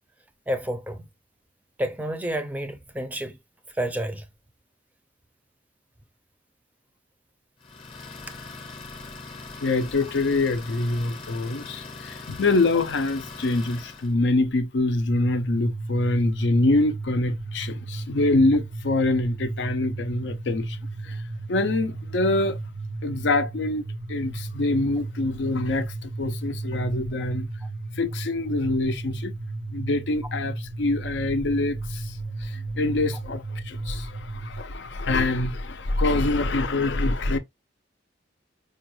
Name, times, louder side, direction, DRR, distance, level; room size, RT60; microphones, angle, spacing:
voice 1, 0.5-1.1 1.8-3.4 3.8-4.3, equal, 10° right, 0.5 m, -29 dB
Idling, 7.6-14.1, left 3 dB, 30° left, 0.8 m, -41 dB
voice 2, 9.6-22.6 23.0-27.5 28.0-29.3 29.7-37.4, left 2 dB, 70° left, 0.5 m, -25 dB
sound 1, 15.1-34.6, right 2 dB, 90° right, 0.6 m, -34 dB
4.9 x 2.2 x 3.0 m
head